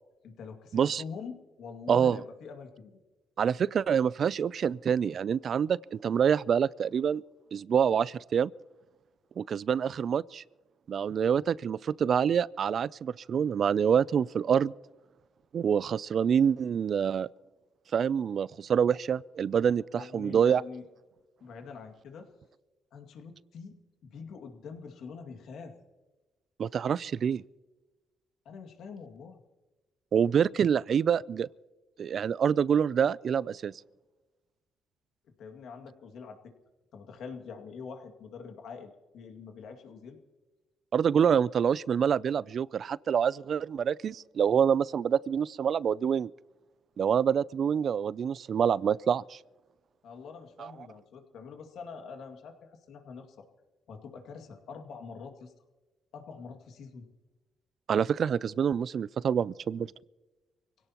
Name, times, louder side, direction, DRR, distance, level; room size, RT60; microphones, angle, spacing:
voice 1, 0.2-3.0 19.9-20.9 21.4-22.3 22.9-25.8 28.5-29.4 35.4-36.5 36.9-40.2 50.0-53.5 53.9-55.5 56.1-57.1, left 5 dB, 75° left, 2.2 m, -45 dB
voice 2, 1.9-2.2 3.4-7.2 7.5-8.5 9.4-10.4 10.9-14.7 15.5-17.3 17.9-20.6 26.6-27.4 30.1-31.5 32.0-33.7 40.9-46.3 47.0-49.4 57.9-59.9, right 7 dB, 55° right, 0.4 m, -26 dB
25.0 x 17.0 x 3.0 m
cardioid pair, 90°, 0 cm